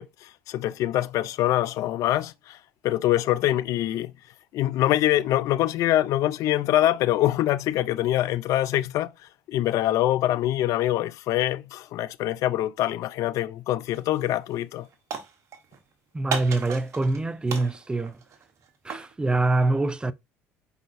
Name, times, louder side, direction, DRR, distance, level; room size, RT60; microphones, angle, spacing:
voice 1, 0.0-2.6 2.8-4.1 4.5-9.1 9.5-14.9, left 13 dB, 65° left, 0.4 m, -24 dB
sound 1, 13.9-14.2 14.5-15.8 16.3-17.2 17.5-19.1, right 6 dB, 55° right, 1.2 m, -35 dB
voice 2, 16.1-18.1 18.8-20.1, right 2 dB, 15° right, 0.4 m, -24 dB
5.0 x 4.0 x 2.5 m
supercardioid pair, 75°, 6 cm